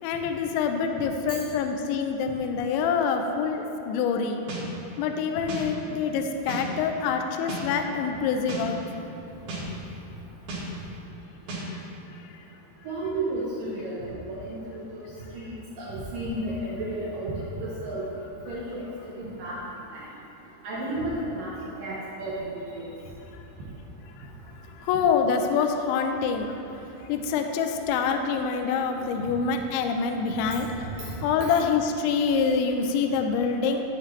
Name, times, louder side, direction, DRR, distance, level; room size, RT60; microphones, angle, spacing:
voice 1, 0.0-4.4 5.0-9.2 11.5-11.9 12.1-12.4 23.3-23.4 24.2-24.3 24.8-26.6 27.1-33.8, left 6 dB, 85° left, 5 dB, 2.8 m, -26 dB
sound 1, 4.5-4.6 5.5-5.6 6.5-6.6 7.5-7.6 8.5-8.6 9.5-9.6 10.5-10.6 11.5-11.6, right 3 dB, 55° right, 2.7 m, -34 dB
voice 2, 12.8-15.0 15.3-18.0 18.5-18.9 19.2-19.6 19.9-20.0 20.6-21.5 21.8-22.5 22.7-22.9 30.5-30.6 31.0-31.1 31.4-31.5, right 1 dB, 80° right, -7 dB, 1.9 m, -32 dB
11.5 x 7.5 x 3.2 m, 3.0 s
omnidirectional pair, 5.4 m